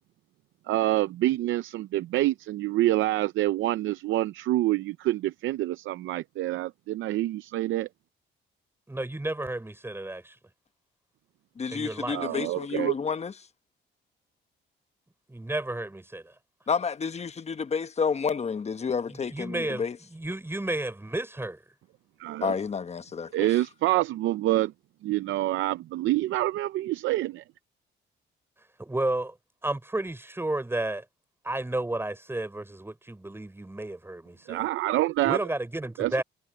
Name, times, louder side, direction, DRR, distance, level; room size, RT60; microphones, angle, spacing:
voice 1, 0.7-7.9 12.1-12.9 22.2-22.5 23.3-24.7 25.0-27.4 34.5-35.4 36.0-36.2, right 16 dB, 80° right, 0.5 m, -27 dB
voice 2, 8.9-10.4 11.7-12.2 15.3-16.3 19.1-19.8 20.1-21.6 28.8-29.4 29.6-31.0 31.4-34.7 35.2-36.2, right 2 dB, 10° right, 5.1 m, -32 dB
voice 3, 11.6-13.3 16.7-20.0 22.4-23.5, left 5 dB, 35° left, 1.0 m, -30 dB
cardioid pair, 90°, 20 cm